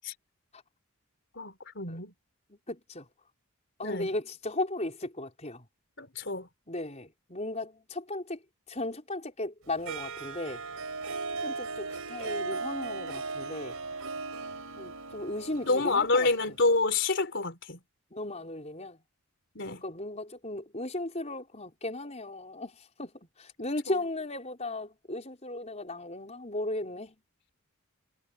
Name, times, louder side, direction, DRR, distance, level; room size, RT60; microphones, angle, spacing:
voice 1, 1.3-2.1 3.8-4.1 6.0-6.5 15.6-17.8 19.6-19.8 23.9-24.0, left 3 dB, 55° left, 4.1 m, -28 dB
voice 2, 2.5-3.0 3.8-5.6 6.7-8.4 8.7-10.6 11.4-13.7 14.8-16.3 18.1-19.0 19.7-22.7 23.0-23.1 23.4-27.1, left 2 dB, 30° left, 5.0 m, -36 dB
Harp, 9.9-16.7, right 4 dB, 70° right, 4.6 m, -37 dB
head